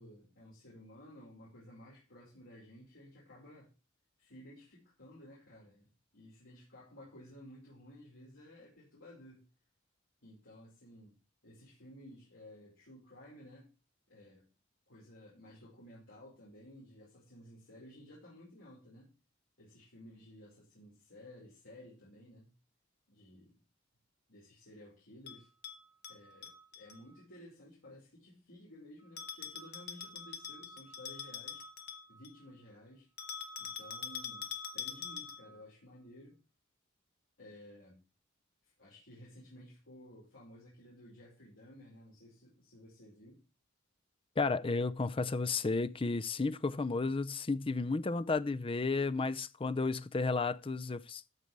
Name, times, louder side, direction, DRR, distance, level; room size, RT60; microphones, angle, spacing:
voice 1, 0.0-3.7 4.2-9.4 10.2-11.2 11.4-13.7 14.1-14.4 14.9-19.1 19.6-22.5 23.1-23.6 24.3-25.5 26.1-31.6 32.1-33.1 33.6-36.4 37.4-38.0 38.8-43.4, left 1 dB, 75° left, 5.1 m, -55 dB
Bell, 25.3-27.0 29.2-32.4 33.2-35.6, left 6 dB, 55° left, 1.4 m, -44 dB
voice 2, 44.4-51.2, left 3 dB, 25° left, 0.5 m, -33 dB
14.0 x 5.3 x 4.6 m
head